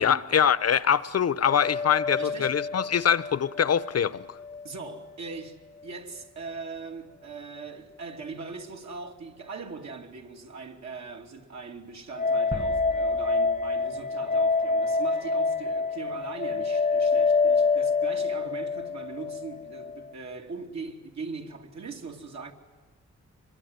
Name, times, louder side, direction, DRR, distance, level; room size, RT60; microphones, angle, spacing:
voice 1, 0.0-4.3, left 8 dB, 55° left, 0.9 m, -24 dB
sound 1, 1.4-4.6 4.9-5.0 12.2-20.1, left 4 dB, 25° left, 0.9 m, -27 dB
voice 2, 2.1-2.6 4.6-22.5, right 4 dB, 65° right, 2.8 m, -40 dB
sound 2, 12.5-15.4, right 2 dB, 20° right, 1.3 m, -41 dB
25.0 x 22.0 x 9.5 m
cardioid pair, 70°, 30 cm